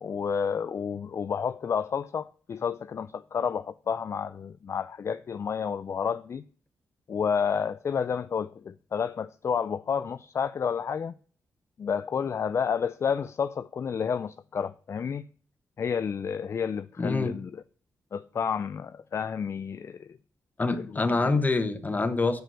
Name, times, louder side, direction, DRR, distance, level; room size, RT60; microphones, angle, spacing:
voice 1, 0.0-6.4 7.1-11.1 11.8-15.3 15.8-17.6 18.1-20.2 20.9-21.0, left 6 dB, 45° left, 0.3 m, -30 dB
voice 2, 17.0-17.4 20.6-22.4, left 3 dB, 25° left, 1.1 m, -26 dB
7.7 x 5.1 x 5.6 m
cardioid pair, 90°, 6 cm